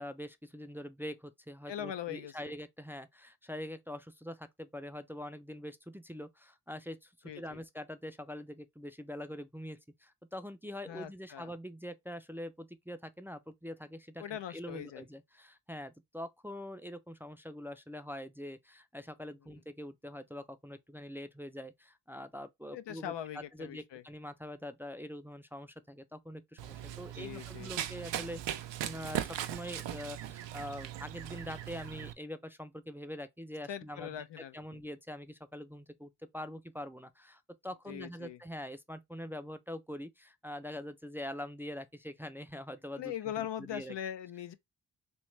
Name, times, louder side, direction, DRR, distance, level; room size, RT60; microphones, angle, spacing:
voice 1, 0.0-34.1 34.4-43.9, left 1 dB, 5° right, 0.5 m, -44 dB
voice 2, 1.7-2.5 7.2-7.6 10.9-11.5 14.2-15.0 22.7-24.0 26.9-27.7 33.7-34.8 37.9-38.4 43.0-44.5, left 10 dB, 75° left, 0.6 m, -41 dB
Run, 26.6-32.1, right 11 dB, 90° right, 0.5 m, -39 dB
3.1 x 3.1 x 3.1 m
cardioid pair, 45°, 42 cm